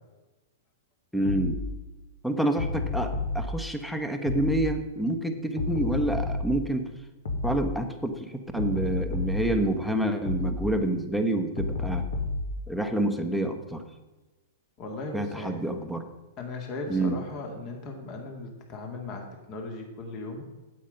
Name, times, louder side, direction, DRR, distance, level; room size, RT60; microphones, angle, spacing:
voice 1, 1.1-1.6 2.2-6.9 7.4-12.1 12.7-13.8 15.1-16.0 16.9-17.2, right 1 dB, ahead, 7 dB, 1.1 m, -28 dB
sound 1, 1.3-1.6 2.6-3.4 4.3-4.6 5.6-6.5 7.3-7.6 8.6-9.5 10.3-10.6 11.6-12.5, left 3 dB, 60° left, 1.8 m, -30 dB
voice 2, 14.8-15.7 16.4-20.5, left 2 dB, 35° left, 3 dB, 2.1 m, -37 dB
8.6 x 8.4 x 5.3 m, 1.2 s
figure-of-eight pair, 105°, 0 cm